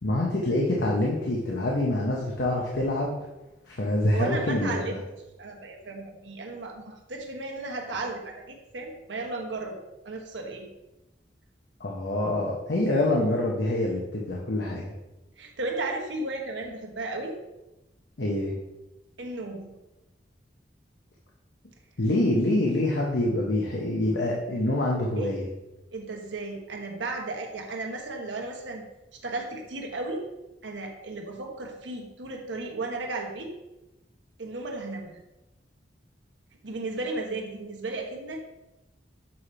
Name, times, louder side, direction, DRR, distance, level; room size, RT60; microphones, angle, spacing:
voice 1, 0.0-3.2 3.7-4.9 11.8-14.9 18.2-18.5 22.0-25.4, left 1 dB, 70° left, -3 dB, 0.9 m, -26 dB
voice 2, 4.1-5.0 5.4-9.8 10.0-10.7 15.4-17.4 19.2-19.7 25.2-25.3 25.9-28.8 29.2-30.2 30.6-33.5 34.4-35.2 36.6-38.4, right 2 dB, 85° right, 1 dB, 1.1 m, -34 dB
7.4 x 3.3 x 4.3 m, 0.98 s
head